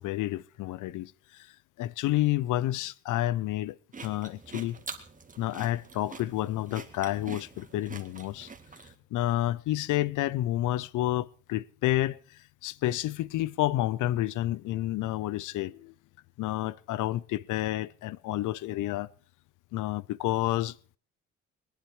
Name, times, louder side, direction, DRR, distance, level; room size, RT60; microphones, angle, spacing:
voice 1, 0.0-1.5 1.8-3.8 4.0-4.8 5.4-8.5 9.1-12.2 12.6-15.9 16.4-19.1 19.7-20.8, left 15 dB, 85° left, 0.6 m, -30 dB
sound 1, 3.9-9.0, right 4 dB, 25° right, 2.0 m, -45 dB
22.5 x 10.5 x 4.6 m
cardioid pair, 90°, 30 cm